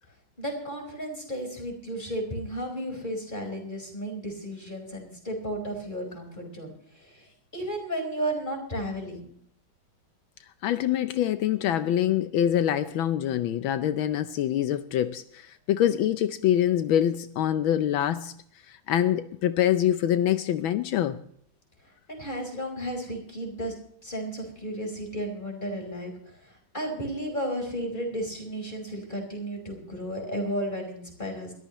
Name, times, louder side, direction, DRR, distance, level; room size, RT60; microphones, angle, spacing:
voice 1, 0.4-9.3 22.1-23.7 24.0-31.5, equal, 20° left, 4.8 m, -33 dB
voice 2, 10.6-18.3 18.7-21.2, left 11 dB, 80° left, 1.5 m, -25 dB
22.0 x 14.0 x 3.0 m
omnidirectional pair, 2.2 m